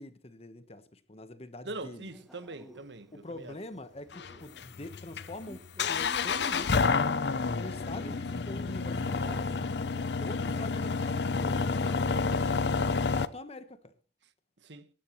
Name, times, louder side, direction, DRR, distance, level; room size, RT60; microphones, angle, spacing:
voice 1, 0.0-2.1 3.1-6.9 7.5-9.6 10.2-12.1 12.9-13.9, left 2 dB, 35° left, 1.2 m, -44 dB
voice 2, 1.6-3.5 14.6-14.9, right 2 dB, 80° right, 1.4 m, -42 dB
Male speech man speaking, 2.1-10.6, equal, ahead, 2.2 m, -54 dB
sound 1, 4.1-13.3, left 4 dB, 70° left, 0.7 m, -29 dB
23.5 x 11.5 x 3.2 m
head